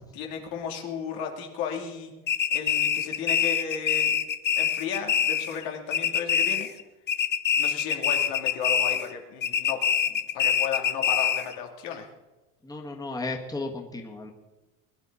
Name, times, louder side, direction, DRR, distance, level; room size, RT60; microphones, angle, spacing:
voice 1, 0.1-2.1 2.5-4.1 4.6-6.7 7.6-12.1, left 7 dB, 90° left, 1 dB, 3.1 m, -34 dB
sound 1, 2.3-5.6 5.9-6.8 7.1-9.1 9.4-11.6, left 8 dB, 30° left, 0.7 m, -25 dB
voice 2, 12.6-14.3, left 2 dB, 10° left, 2 dB, 1.6 m, -34 dB
21.5 x 11.0 x 4.2 m, 1.1 s
cardioid pair, 135°, 37 cm